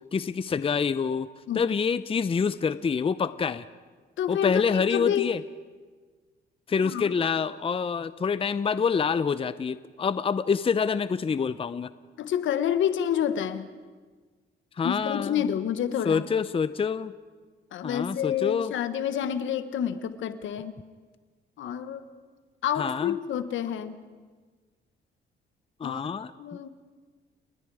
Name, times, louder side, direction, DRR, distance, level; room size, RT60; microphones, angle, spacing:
voice 1, 0.1-1.3 1.5-3.6 4.3-5.4 6.7-11.9 14.8-15.4 16.0-17.1 17.8-18.7 22.8-23.2 25.8-26.3, left 6 dB, 30° left, 14 dB, 0.6 m, -26 dB
voice 2, 4.2-5.3 6.8-7.1 12.2-13.7 14.8-16.3 17.7-20.7 21.6-22.0 22.6-24.0 25.8-26.1 26.4-26.7, left 9 dB, 75° left, 11 dB, 1.4 m, -28 dB
30.0 x 20.0 x 4.9 m, 1.5 s
cardioid pair, 90°, 20 cm